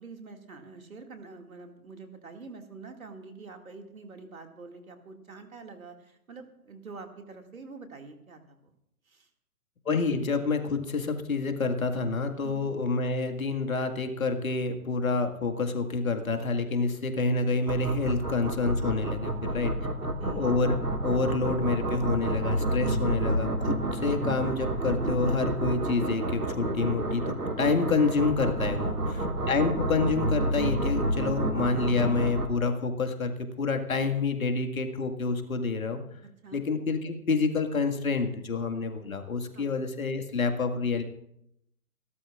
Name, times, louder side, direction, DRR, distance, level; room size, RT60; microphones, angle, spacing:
voice 1, 0.0-8.7 9.1-9.3 12.4-12.7 19.3-20.5 28.7-29.8 36.4-36.6 39.5-39.7, right 4 dB, 65° right, 4 dB, 2.3 m, -46 dB
voice 2, 9.9-19.7 20.2-20.8 21.0-29.0 29.5-36.0 36.5-41.0, left 4 dB, 65° left, 5 dB, 2.0 m, -28 dB
sound 1, 17.7-32.5, right 1 dB, 80° right, 1.9 m, -30 dB
28.0 x 12.5 x 2.5 m, 0.78 s
figure-of-eight pair, 130°, 45 cm